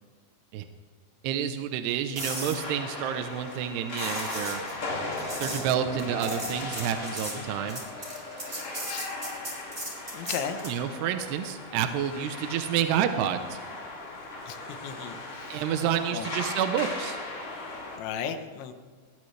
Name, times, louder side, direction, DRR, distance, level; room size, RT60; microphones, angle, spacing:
voice 1, 1.2-4.6 5.4-7.8 10.6-13.6 15.5-17.2, right 9 dB, 75° right, 7 dB, 2.7 m, -29 dB
sound 1, 2.2-18.0, left 2 dB, 35° left, 2.4 m, -38 dB
sound 2, 2.2-10.8 15.0-15.2, right 1 dB, 15° right, 3.8 m, -39 dB
voice 2, 10.1-10.6 14.5-14.6 14.8-15.6 16.1-16.3 18.0-18.7, left 8 dB, 80° left, 8 dB, 3.3 m, -35 dB
21.5 x 19.5 x 3.3 m, 1.5 s
omnidirectional pair, 5.2 m